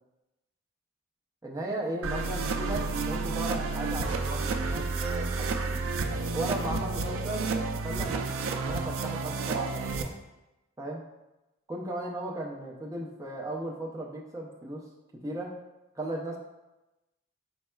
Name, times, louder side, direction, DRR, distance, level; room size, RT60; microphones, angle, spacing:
voice 1, 1.4-5.8 6.3-7.5 7.8-10.1 10.8-11.0 11.7-14.8 15.2-15.5 16.0-16.4, right 1 dB, 15° right, -2 dB, 0.5 m, -36 dB
sound 1, 2.0-10.0, right 3 dB, 80° right, 0.4 m, -30 dB
4.3 x 4.0 x 2.2 m, 1.0 s
head